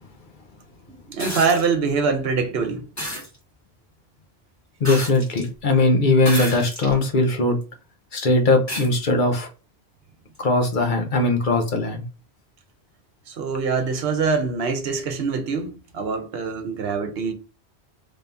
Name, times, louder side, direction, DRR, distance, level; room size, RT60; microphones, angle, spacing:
voice 1, 0.9-2.9 13.3-17.3, right 5 dB, 70° right, 0.9 m, -24 dB
sound 1, 1.2-1.7 3.0-3.3 4.8-5.5 6.2-7.0 7.6-7.7 8.7-8.9 10.3-10.4, equal, 15° left, 1.2 m, -30 dB
voice 2, 4.8-7.6 8.1-9.5 10.4-12.0, left 2 dB, 50° left, 0.9 m, -20 dB
3.3 x 2.7 x 3.4 m
omnidirectional pair, 1.1 m